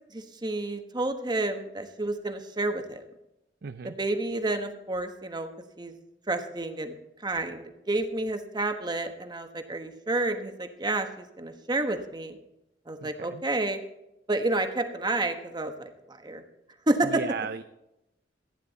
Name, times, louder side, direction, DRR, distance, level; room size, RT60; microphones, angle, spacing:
voice 1, 0.1-3.1 3.8-5.5 5.8-6.0 6.3-12.4 12.9-13.8 14.3-16.4 16.9-17.2, right 2 dB, 25° right, 7 dB, 1.2 m, -30 dB
voice 2, 3.6-3.9 13.0-13.4 17.0-17.6, right 5 dB, 60° right, 10 dB, 0.5 m, -35 dB
15.5 x 9.7 x 4.1 m, 0.90 s
head